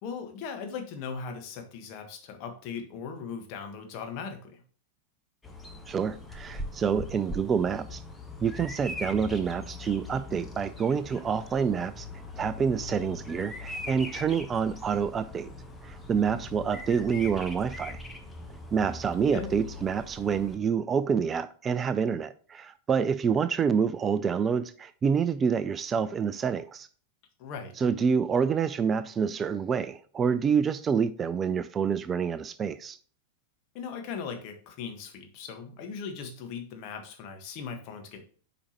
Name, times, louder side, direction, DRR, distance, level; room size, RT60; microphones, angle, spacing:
voice 1, 0.0-4.6 19.3-19.5 27.4-27.7 33.7-38.2, left 6 dB, 40° left, 1.5 m, -38 dB
Bird vocalization bird call bird song, 5.4-20.6, left 2 dB, 10° left, 1.1 m, -41 dB
voice 2, 5.9-8.0 8.4-12.1 12.4-15.5 15.8-18.0 18.7-26.9 27.8-33.0, right 6 dB, 20° right, 0.4 m, -27 dB
8.4 x 5.0 x 3.0 m
figure-of-eight pair, 90°, 0 cm